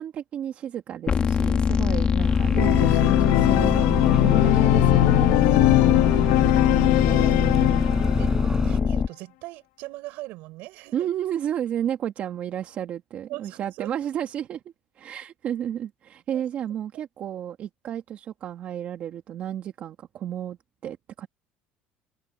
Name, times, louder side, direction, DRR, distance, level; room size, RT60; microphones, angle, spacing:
voice 1, 0.0-5.3 10.9-14.6 14.9-20.6 20.8-21.3, right 10 dB, 50° right, 1.6 m, -32 dB
sound 1, 1.1-9.1, left 6 dB, 30° left, 1.6 m, -23 dB
sound 2, 2.2-8.8, right 4 dB, 20° right, 4.4 m, -32 dB
Organ, 2.6-8.3, left 20 dB, 85° left, 0.7 m, -20 dB
voice 2, 5.9-11.1 13.3-13.9 16.3-16.6 16.9-17.0, right 20 dB, 75° right, 5.8 m, -41 dB
cardioid pair, 120°, 3 cm